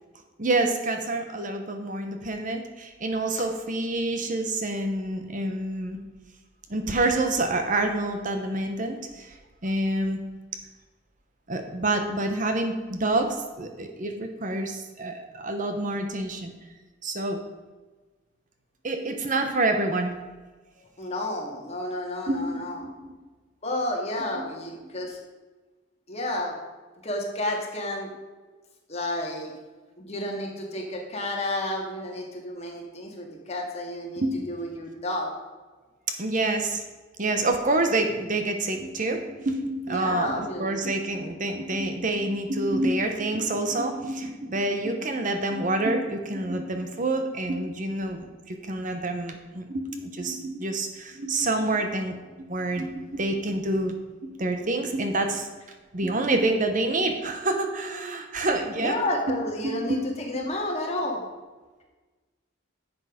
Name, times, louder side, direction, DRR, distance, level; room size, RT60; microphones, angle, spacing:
voice 1, 0.4-6.0 6.7-9.4 9.6-10.2 11.5-16.5 17.0-17.4 18.8-20.1 22.3-23.1 34.2-34.5 36.1-36.8 37.2-52.2 52.5-54.0 54.4-55.5 55.9-59.0 59.6-60.0 60.3-60.5, right 2 dB, 40° right, 6 dB, 1.0 m, -27 dB
voice 2, 21.0-22.8 23.6-25.2 26.1-26.6 27.0-28.1 28.9-29.5 30.0-35.3 39.9-40.8 58.8-61.2, left 1 dB, 35° left, 0 dB, 2.1 m, -31 dB
10.5 x 7.3 x 5.1 m, 1.3 s
head